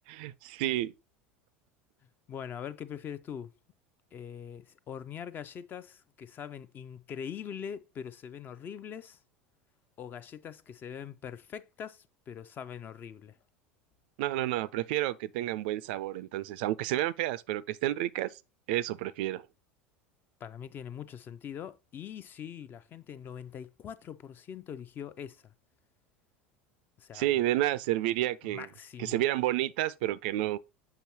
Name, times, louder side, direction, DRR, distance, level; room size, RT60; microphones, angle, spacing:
voice 1, 0.1-0.9 14.2-18.3 18.7-19.5 27.1-28.7 29.0-30.6, right 15 dB, 55° right, 0.3 m, -30 dB
voice 2, 2.3-3.5 4.1-9.2 10.0-13.4 20.4-25.5 27.0-27.4 28.4-29.2, left 8 dB, 30° left, 0.4 m, -42 dB
6.9 x 5.7 x 2.8 m
figure-of-eight pair, 75°, 6 cm